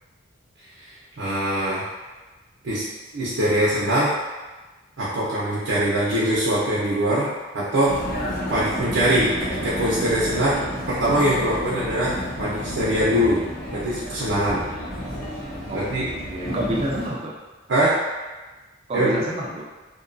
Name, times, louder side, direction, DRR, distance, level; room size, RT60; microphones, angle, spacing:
voice 1, 1.2-1.9 2.6-2.8 3.1-4.1 5.0-8.0 8.5-13.4 13.7-14.6 15.7-16.1 17.7-18.0 18.9-19.1, right 1 dB, 75° right, -8 dB, 0.6 m, -22 dB
Vehicle, 7.9-17.1, equal, 50° left, 0.7 m, -31 dB
voice 2, 16.3-17.3 18.9-19.6, right 1 dB, 30° right, -4 dB, 0.3 m, -28 dB
2.7 x 2.2 x 2.5 m, 1.2 s
head